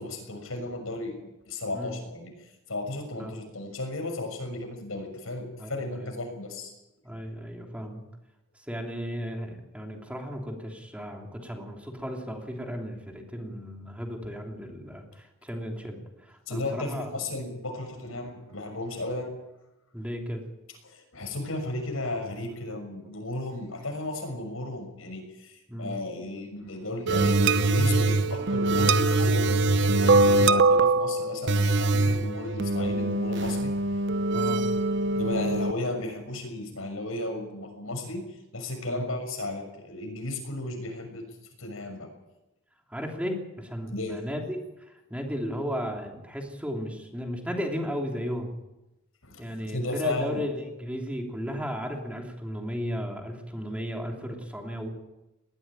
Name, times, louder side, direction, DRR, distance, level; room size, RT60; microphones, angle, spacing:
voice 1, 0.0-6.7 16.5-19.3 20.8-33.7 35.1-38.2 38.5-41.2 41.6-42.1 43.9-44.2 49.2-50.4, left 2 dB, 85° left, 5 dB, 6.4 m, -34 dB
voice 2, 5.6-6.1 7.0-8.0 8.6-17.1 19.9-20.4 25.7-25.9 34.3-34.6 38.9-39.0 42.9-44.6 44.9-48.5 49.4-54.9, equal, 5° right, 2 dB, 3.1 m, -35 dB
sound 1, 27.1-35.7, right 2 dB, 60° right, 0.9 m, -23 dB
19.5 x 15.5 x 9.1 m, 0.96 s
head